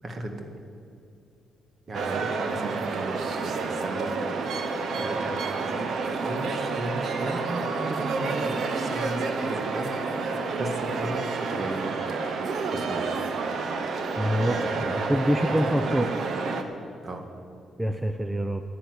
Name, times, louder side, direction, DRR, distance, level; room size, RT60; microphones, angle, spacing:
voice 1, 0.0-0.5 1.9-3.2 3.4-4.2 5.0-9.9 10.2-12.0 12.7-13.0 14.5-14.9 15.5-15.8 17.0-17.3, right 1 dB, 40° right, 5 dB, 1.7 m, -36 dB
sound 1, 1.9-16.6, right 4 dB, 65° right, 1.1 m, -29 dB
voice 2, 14.2-16.1 17.8-18.6, equal, 10° right, 7 dB, 0.7 m, -26 dB
10.5 x 10.0 x 8.1 m, 2.6 s
cardioid pair, 85°, 0 cm